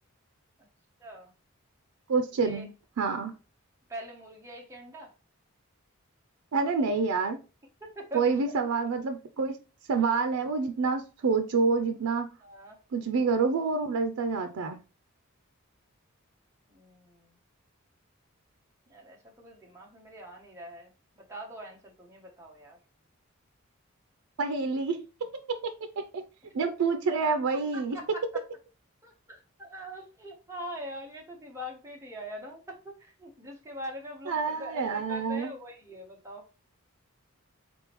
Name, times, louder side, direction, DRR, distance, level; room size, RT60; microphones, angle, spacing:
voice 1, 1.0-1.3 2.3-2.7 3.9-5.1 7.8-8.6 12.4-12.8 16.7-17.4 18.9-20.9 21.2-22.8 27.3-27.4 27.7-28.4 29.0-36.4, equal, 15° right, 0.9 m, -43 dB
voice 2, 2.1-3.3 6.5-7.4 8.1-9.6 9.9-12.3 12.9-14.8 24.4-25.0 25.5-25.7 26.1-26.2 26.5-28.0 34.3-35.5, right 4 dB, 85° right, 0.4 m, -27 dB
4.0 x 3.5 x 3.0 m
head